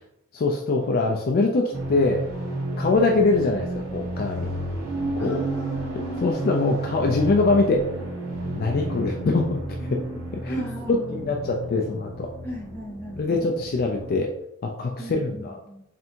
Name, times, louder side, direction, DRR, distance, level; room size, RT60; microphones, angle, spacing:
voice 1, 0.3-2.3 2.8-4.6 5.2-5.4 6.2-7.9 8.6-9.6 9.9-10.0 10.3-10.5 11.1-12.3 13.2-14.3 14.6-15.6, left 3 dB, 45° left, 2 dB, 0.3 m, -23 dB
sound 1, 1.7-14.2, right 1 dB, 75° right, 1.1 m, -32 dB
voice 2, 5.2-6.3 10.5-11.3 12.4-13.5 15.0-15.8, right 1 dB, 10° left, -4 dB, 0.9 m, -36 dB
3.4 x 2.6 x 4.3 m, 0.80 s
head